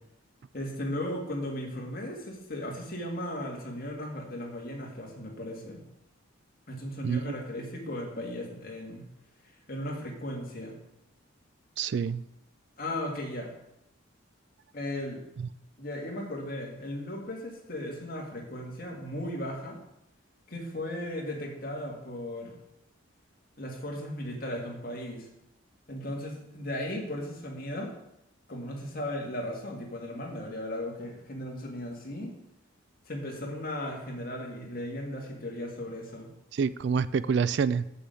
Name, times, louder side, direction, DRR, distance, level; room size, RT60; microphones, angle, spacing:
voice 1, 0.5-5.8 6.7-9.1 9.4-10.8 12.8-13.5 14.7-15.2 15.8-19.8 20.5-22.6 23.6-25.3 25.9-27.9 28.5-32.4 33.1-36.3, left 1 dB, 45° left, 0 dB, 2.2 m, -36 dB
voice 2, 7.0-7.3 11.8-12.2 15.4-15.5 36.5-37.8, right 6 dB, 55° right, 17 dB, 0.3 m, -27 dB
7.0 x 6.9 x 7.7 m, 0.82 s
head